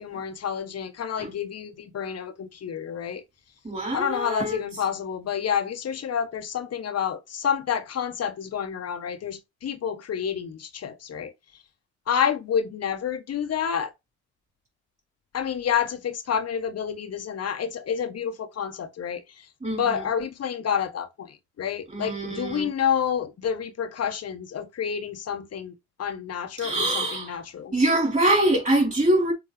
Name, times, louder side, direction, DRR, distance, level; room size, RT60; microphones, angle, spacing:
voice 1, 0.0-3.2 3.9-11.3 12.1-13.9 15.3-25.7 26.0-27.7, left 8 dB, 55° left, 1.4 m, -29 dB
voice 2, 3.6-4.6 19.6-20.0 21.9-22.7 26.6-27.4 27.7-29.3, right 1 dB, 25° right, 4.3 m, -24 dB
7.0 x 4.3 x 3.4 m
cardioid pair, 90°, 30 cm